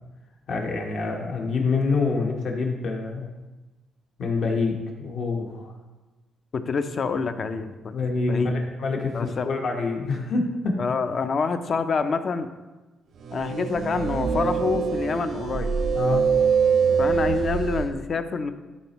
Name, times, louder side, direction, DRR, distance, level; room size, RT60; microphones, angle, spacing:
voice 1, 0.5-3.3 4.2-5.7 7.9-10.8 15.9-16.3, left 3 dB, 65° left, 1 dB, 1.2 m, -26 dB
voice 2, 6.5-7.9 8.3-8.5 9.1-9.5 10.8-12.5 13.3-15.7 17.0-18.5, left 5 dB, 50° left, 9 dB, 0.5 m, -27 dB
sound 1, 13.2-17.9, right 6 dB, 65° right, 0.6 m, -24 dB
11.5 x 4.3 x 3.0 m, 1.1 s
cardioid pair, 90°, 0 cm